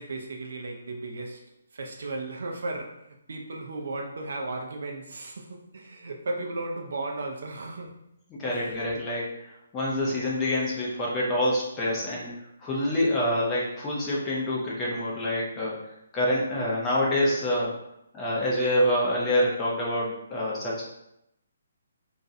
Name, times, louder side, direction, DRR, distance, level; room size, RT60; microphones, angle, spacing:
voice 1, 0.0-1.4 1.7-7.9 8.4-8.7, right 2 dB, 55° right, 2 dB, 0.4 m, -35 dB
voice 2, 8.4-9.2 9.7-12.3 12.6-15.7 16.1-17.7 18.1-20.8, left 1 dB, 10° left, -5 dB, 0.4 m, -26 dB
2.4 x 2.0 x 2.6 m, 0.82 s
hypercardioid pair, 175°, 0 cm